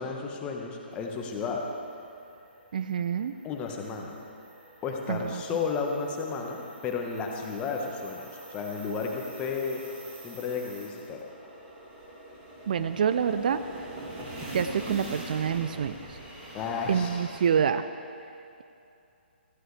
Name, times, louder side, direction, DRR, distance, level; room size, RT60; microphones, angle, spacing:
voice 1, 0.0-1.6 3.4-4.1 4.8-9.8 10.2-11.2 16.5-17.2, left 5 dB, 20° left, 1 dB, 1.4 m, -33 dB
sound 1, 1.0-17.5, right 1 dB, 25° right, 3.0 m, -45 dB
voice 2, 2.7-3.3 5.1-5.4 12.7-13.6 14.5-16.2 16.9-17.9, right 7 dB, 50° right, 11 dB, 0.4 m, -27 dB
17.0 x 14.5 x 3.4 m, 2.5 s
figure-of-eight pair, 135°, 6 cm